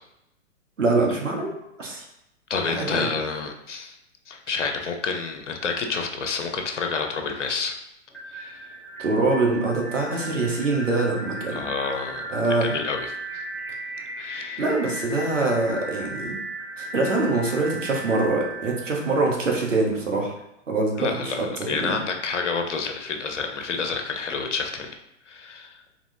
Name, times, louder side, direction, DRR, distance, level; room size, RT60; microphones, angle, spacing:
voice 1, 0.8-1.5 1.8-2.0 2.7-3.1 9.0-11.6 12.3-12.7 14.6-16.4 16.8-20.3 20.7-21.3 21.7-22.0, right 3 dB, 80° right, 0 dB, 1.1 m, -24 dB
voice 2, 2.5-4.0 4.3-7.7 8.3-8.7 11.5-13.2 14.2-14.6 21.0-24.9 25.3-25.8, left 5 dB, 70° left, 4 dB, 0.7 m, -29 dB
sound 1, 8.1-19.9, right 1 dB, 5° left, 0.8 m, -36 dB
4.1 x 2.9 x 2.7 m, 0.82 s
figure-of-eight pair, 110°, 37 cm